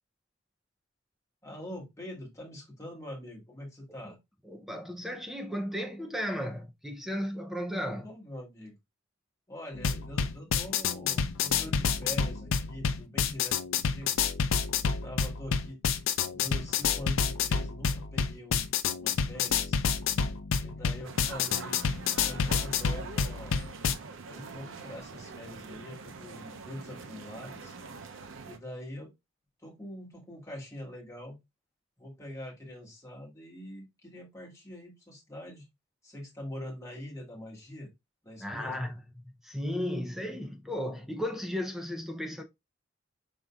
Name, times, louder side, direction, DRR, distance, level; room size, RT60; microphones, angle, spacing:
voice 1, 1.4-4.2 8.0-8.8 9.5-14.1 15.0-15.8 16.2-18.7 19.0-19.8 20.6-21.8 22.2-23.6 24.3-27.8 28.4-29.1 29.6-31.4 32.0-35.7 36.0-37.9 38.2-38.8, left 1 dB, 15° left, 1.7 m, -43 dB
voice 2, 4.4-8.1 38.4-39.0 39.4-42.4, equal, ahead, 0.6 m, -34 dB
sound 1, 9.8-23.9, left 6 dB, 90° left, 0.5 m, -29 dB
sound 2, 21.0-28.6, right 4 dB, 90° right, 0.6 m, -44 dB
5.3 x 3.8 x 2.3 m
head